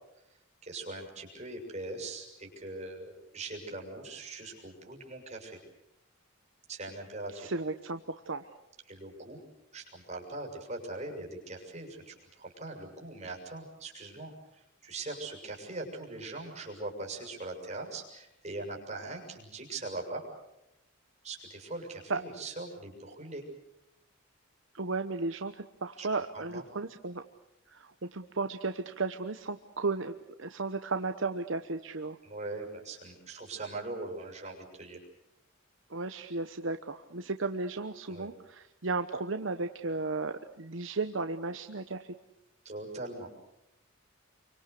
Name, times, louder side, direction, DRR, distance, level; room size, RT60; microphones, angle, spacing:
voice 1, 0.6-5.6 6.7-7.5 8.9-9.4 9.7-20.2 21.2-23.4 26.0-26.1 26.3-26.6 32.2-35.0 38.1-38.3 42.6-43.3, right 2 dB, 35° right, 0 dB, 6.7 m, -41 dB
voice 2, 7.4-8.0 8.3-8.4 22.1-22.2 24.7-27.2 27.7-32.2 35.9-42.1, right 3 dB, 65° right, 8 dB, 1.0 m, -34 dB
28.5 x 24.5 x 6.7 m, 0.86 s
head